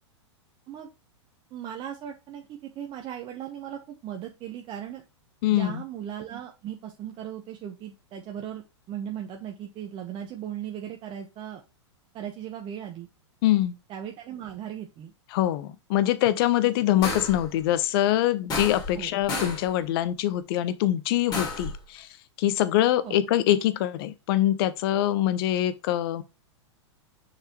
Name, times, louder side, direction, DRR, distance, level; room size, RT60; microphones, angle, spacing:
voice 1, 1.5-5.0 5.5-11.6 12.1-13.1 13.9-15.1 18.9-19.1 23.0-23.2, right 10 dB, 35° right, 1.2 m, -37 dB
voice 2, 5.4-5.8 13.4-13.8 15.3-22.1 22.4-26.2, left 13 dB, 50° left, 1.0 m, -24 dB
sound 1, 17.0-17.5 18.5-19.0 19.3-19.7 21.3-21.8, left 3 dB, 25° left, 2.8 m, -31 dB
6.5 x 4.6 x 3.1 m
hypercardioid pair, 110°, 15 cm